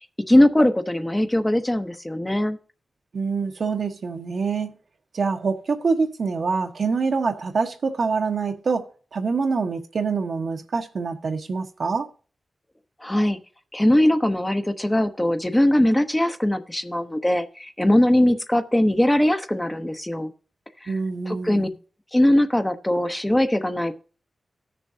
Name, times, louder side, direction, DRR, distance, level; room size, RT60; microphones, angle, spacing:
voice 1, 0.3-2.6 13.0-13.4 13.7-20.3 20.8-20.9 21.3-21.7 22.1-23.9, left 1 dB, 15° left, 0.8 m, -20 dB
voice 2, 3.1-4.7 5.1-12.1 20.9-21.7, right 4 dB, 70° right, 1.2 m, -25 dB
17.0 x 6.8 x 2.7 m
wide cardioid pair, 85°, 0 cm